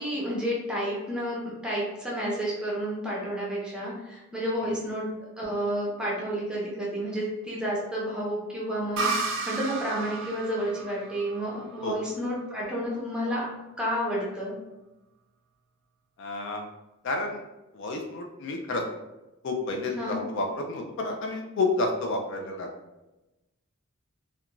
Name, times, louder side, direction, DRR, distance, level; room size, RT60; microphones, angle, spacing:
voice 1, 0.0-5.1 5.4-13.5 13.8-14.5 19.9-20.2, equal, 5° right, -5 dB, 0.6 m, -30 dB
sound 1, 9.0-12.5, right 3 dB, 55° right, 0.4 m, -33 dB
voice 2, 16.2-16.6 17.0-17.4 17.7-18.8 19.4-22.7, left 2 dB, 55° left, 2 dB, 0.3 m, -30 dB
2.4 x 2.2 x 2.9 m, 1.0 s
head